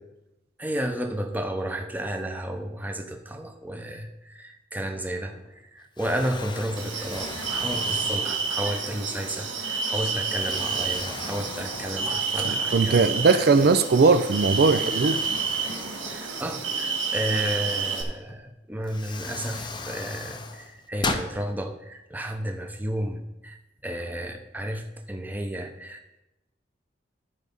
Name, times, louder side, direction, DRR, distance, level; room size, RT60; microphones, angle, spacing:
voice 1, 0.6-13.2 16.1-23.6 23.8-26.2, right 1 dB, 10° right, 4 dB, 0.8 m, -32 dB
Explosion, 5.3-5.6 6.0-8.8 9.4-9.6 10.3-12.5 12.9-13.0 14.2-16.9 18.3-18.4 18.8-21.3, left 3 dB, 25° left, 0.6 m, -37 dB
sound 1, 6.8-18.0, right 5 dB, 85° right, 1.7 m, -29 dB
voice 2, 12.4-15.2, right 4 dB, 55° right, 10 dB, 0.4 m, -19 dB
13.0 x 4.8 x 5.4 m, 0.97 s
head